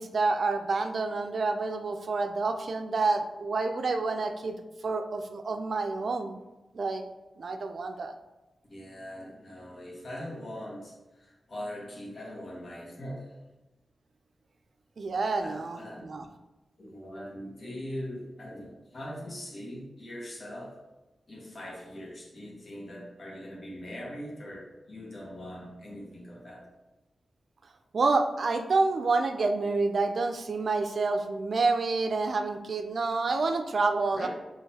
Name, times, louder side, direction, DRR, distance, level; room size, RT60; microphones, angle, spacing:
voice 1, 0.0-6.4 6.7-7.0 7.4-8.1 15.0-16.2 27.9-34.3, right 3 dB, 65° right, 6 dB, 0.4 m, -28 dB
voice 2, 8.7-13.4 15.4-16.1 16.8-20.8 21.3-26.6 34.1-34.3, left 1 dB, 55° left, -3 dB, 1.4 m, -41 dB
5.6 x 3.1 x 2.8 m, 1.1 s
cardioid pair, 55°, 0 cm